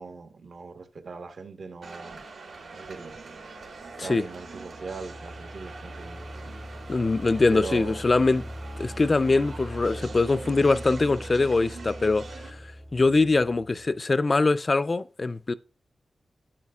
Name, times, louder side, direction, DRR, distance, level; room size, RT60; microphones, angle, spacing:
voice 1, 0.0-2.2 2.7-3.2 4.0-6.7 7.5-8.0, right 4 dB, 65° right, 1.2 m, -40 dB
sound 1, 1.8-12.5, right 4 dB, 85° right, 2.5 m, -44 dB
sound 2, 3.8-14.0, equal, 15° right, 0.7 m, -41 dB
voice 2, 6.9-8.5 8.8-15.5, left 3 dB, 35° left, 0.3 m, -23 dB
12.0 x 8.8 x 2.4 m
wide cardioid pair, 140°, 0 cm